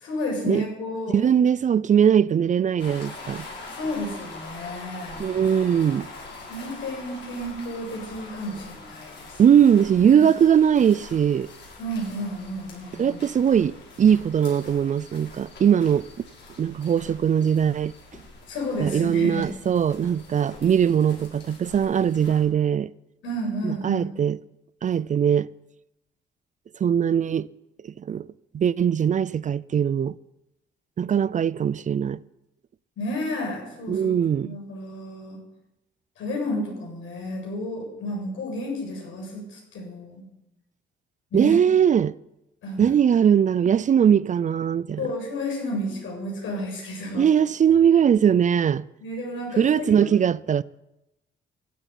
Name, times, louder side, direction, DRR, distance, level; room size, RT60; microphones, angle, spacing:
voice 1, 0.0-1.2 3.7-5.3 6.5-9.4 10.0-10.3 11.8-13.2 18.5-19.5 23.2-24.1 33.0-35.4 36.2-40.2 41.3-41.7 42.6-42.9 45.0-47.3 49.0-50.1, equal, 80° left, 7.5 m, -31 dB
voice 2, 1.1-3.5 5.2-6.1 9.4-11.5 13.0-16.3 16.6-17.9 18.8-22.9 23.6-24.4 24.8-25.5 26.8-27.5 28.0-28.3 28.5-30.2 31.0-32.2 33.9-34.6 41.3-42.1 42.8-45.0 47.1-48.9 49.6-50.6, right 8 dB, 40° right, 0.4 m, -20 dB
sound 1, 2.8-22.5, left 3 dB, 60° left, 6.4 m, -44 dB
14.5 x 8.1 x 9.8 m
cardioid pair, 90°, 20 cm